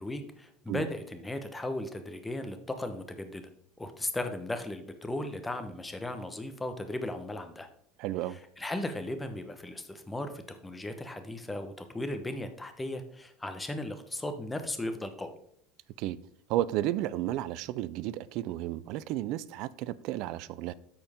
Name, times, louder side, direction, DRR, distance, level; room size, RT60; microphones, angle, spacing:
voice 1, 0.0-3.5 3.8-7.7 8.3-15.3, left 1 dB, 10° left, 1.0 m, -36 dB
voice 2, 8.0-8.4 16.0-16.2 16.5-20.7, right 14 dB, 60° right, 0.4 m, -32 dB
13.0 x 4.4 x 3.6 m
supercardioid pair, 100°, 0 cm